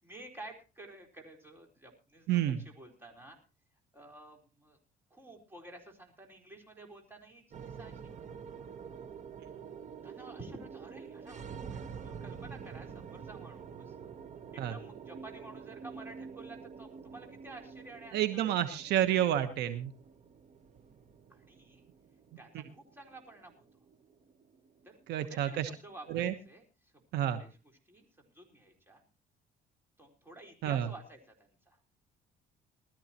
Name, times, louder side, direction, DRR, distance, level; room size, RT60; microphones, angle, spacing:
voice 1, 0.0-3.4 3.9-4.8 5.1-8.4 10.0-11.4 11.7-14.0 14.5-18.5 21.3-21.8 22.4-23.6 24.8-27.0 27.4-27.5 27.9-29.0 30.0-31.8, right 2 dB, 15° right, 2 dB, 4.2 m, -51 dB
voice 2, 2.3-2.6 14.6-14.7 18.1-19.9 25.1-25.7 26.1-26.3 27.1-27.4 30.6-30.9, right 11 dB, 80° right, 10 dB, 1.2 m, -29 dB
sound 1, 7.5-25.9, right 6 dB, 45° right, 1.2 m, -47 dB
20.0 x 13.0 x 3.0 m, 0.31 s
cardioid pair, 110°, 17 cm